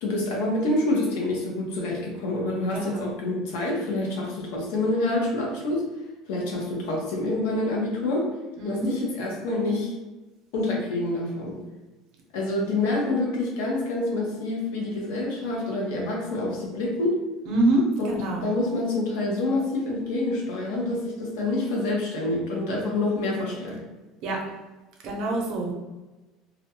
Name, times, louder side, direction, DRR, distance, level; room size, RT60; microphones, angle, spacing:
voice 1, 0.0-5.8 6.3-8.3 8.6-9.9 10.5-11.6 12.3-17.2 18.0-18.1 18.4-23.8, left 2 dB, 85° left, -1 dB, 0.7 m, -27 dB
voice 2, 2.7-3.1 8.6-8.9 17.5-18.5 24.2-24.4 25.0-25.8, right 1 dB, 50° right, 0 dB, 0.6 m, -25 dB
2.4 x 2.1 x 2.8 m, 1.2 s
cardioid pair, 170°, 0 cm